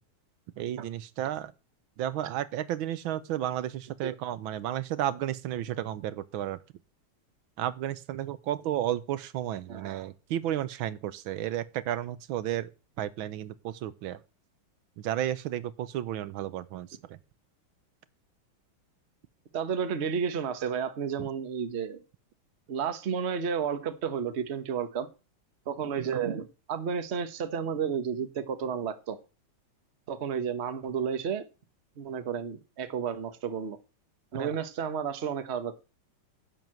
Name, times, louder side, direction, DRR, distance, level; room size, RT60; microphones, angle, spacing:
voice 1, 0.6-1.5 2.0-6.6 7.6-12.7 13.0-14.2 15.0-17.2 21.2-21.3 34.3-34.5, right 12 dB, 80° right, 1.5 m, -32 dB
voice 2, 9.7-10.1 19.5-22.0 22.7-25.1 25.7-29.2 30.1-31.4 32.0-33.8 34.3-35.7, right 7 dB, 40° right, 1.1 m, -32 dB
10.5 x 4.5 x 7.6 m
omnidirectional pair, 2.2 m